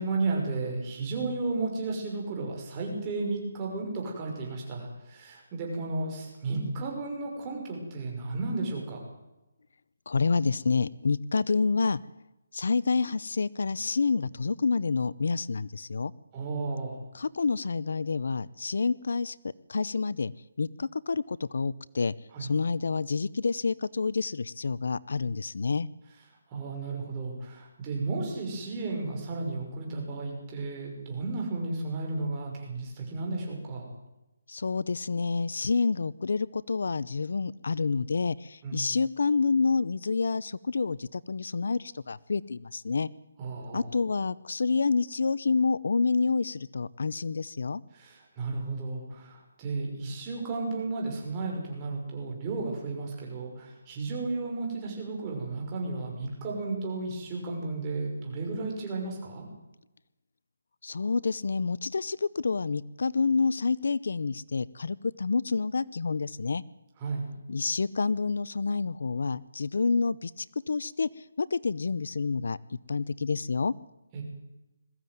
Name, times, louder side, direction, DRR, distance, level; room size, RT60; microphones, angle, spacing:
voice 1, 0.0-9.0 16.3-17.0 22.3-22.5 26.5-33.9 38.6-38.9 43.4-43.9 47.9-59.4 67.0-67.3 74.1-74.2, right 3 dB, 20° right, -1 dB, 5.9 m, -33 dB
voice 2, 10.1-12.0 12.5-16.1 17.1-20.3 20.6-22.1 22.4-25.9 34.5-43.1 43.7-47.8 60.8-66.6 67.5-72.6 72.9-73.7, left 4 dB, 65° left, 20 dB, 0.6 m, -28 dB
21.5 x 15.0 x 9.4 m, 0.96 s
hypercardioid pair, 170°, 0 cm